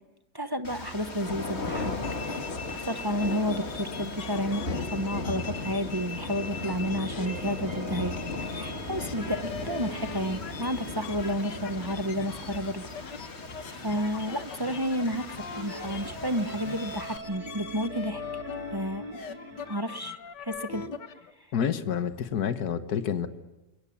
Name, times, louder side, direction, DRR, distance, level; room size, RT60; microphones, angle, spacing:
voice 1, 0.3-2.0 2.2-8.1 8.4-12.8 13.1-13.3 13.6-18.2 18.7-19.4 19.7-20.8, equal, 20° right, 8 dB, 0.8 m, -31 dB
sound 1, 0.6-17.2, left 3 dB, 40° left, 2.4 m, -37 dB
sound 2, 1.7-5.0 7.0-13.5 15.5-19.7, right 2 dB, 80° right, 4.6 m, -45 dB
sound 3, 1.8-7.7 7.9-21.3, left 6 dB, 85° left, 1.9 m, -42 dB
voice 2, 21.5-23.3, left 8 dB, 65° left, 10 dB, 1.7 m, -28 dB
27.5 x 22.5 x 8.7 m, 1.0 s
omnidirectional pair, 1.8 m